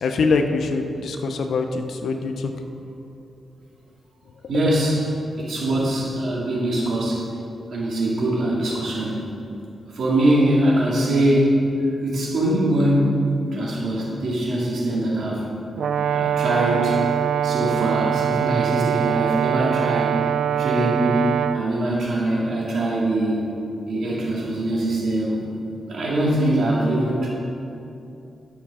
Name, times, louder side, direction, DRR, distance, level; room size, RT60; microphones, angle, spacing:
voice 1, 0.0-2.5, left 4 dB, 70° left, 6 dB, 0.8 m, -23 dB
voice 2, 4.5-5.0 5.4-7.2 7.7-9.2 9.9-11.5 12.0-13.1 13.5-15.5 16.1-17.0 17.4-20.2 20.6-23.5 23.9-25.4 25.9-27.3, right 1 dB, 65° right, -5 dB, 2.7 m, -22 dB
Brass instrument, 15.8-21.6, right 9 dB, 80° right, 0.4 m, -23 dB
11.5 x 7.2 x 5.7 m, 2.8 s
wide cardioid pair, 180°, 0 cm